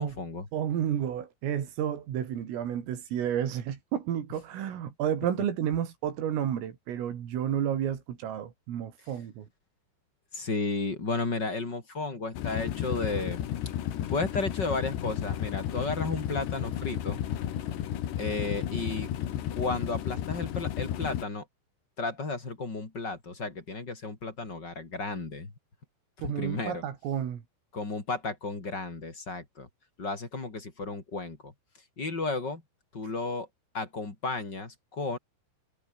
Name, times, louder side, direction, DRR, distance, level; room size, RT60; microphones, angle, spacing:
voice 1, 0.0-0.5 10.3-13.4 14.1-17.2 18.2-19.1 19.5-21.5 22.0-25.5 26.2-26.8 27.7-29.7 30.0-31.5 32.0-32.6 32.9-33.5 33.7-35.2, left 3 dB, 25° left, 3.7 m, -33 dB
voice 2, 0.5-9.5 26.2-27.4, right 9 dB, 85° right, 5.7 m, -31 dB
sound 1, 12.3-21.2, left 11 dB, 65° left, 4.0 m, -33 dB
omnidirectional pair, 5.8 m